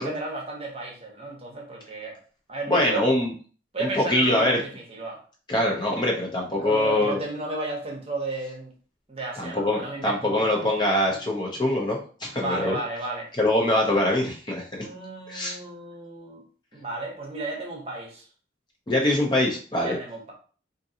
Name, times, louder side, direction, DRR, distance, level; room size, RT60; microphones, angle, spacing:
voice 1, 0.0-2.2 2.5-3.1 3.7-5.2 6.6-8.7 9.1-10.7 11.1-11.2 12.3-13.3 14.8-16.4 16.7-18.3 19.8-20.3, right 2 dB, 30° right, 0 dB, 0.8 m, -33 dB
voice 2, 2.7-3.3 3.8-4.6 5.5-7.2 9.4-12.8 13.4-14.8 15.3-15.6 18.9-20.0, left 1 dB, 25° left, -1 dB, 0.6 m, -23 dB
3.7 x 2.6 x 2.7 m, 0.40 s
head